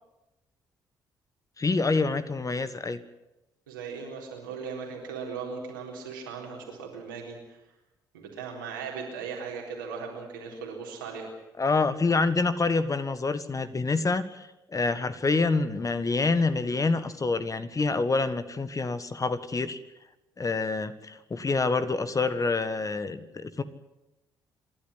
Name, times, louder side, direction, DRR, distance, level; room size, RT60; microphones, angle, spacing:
voice 1, 1.6-3.0 11.6-19.8 20.4-23.6, left 3 dB, 30° left, 12 dB, 1.7 m, -27 dB
voice 2, 3.7-7.6 8.1-11.3, right 5 dB, 85° right, -1 dB, 3.9 m, -38 dB
27.5 x 12.0 x 10.0 m, 0.95 s
hypercardioid pair, 45°, 10 cm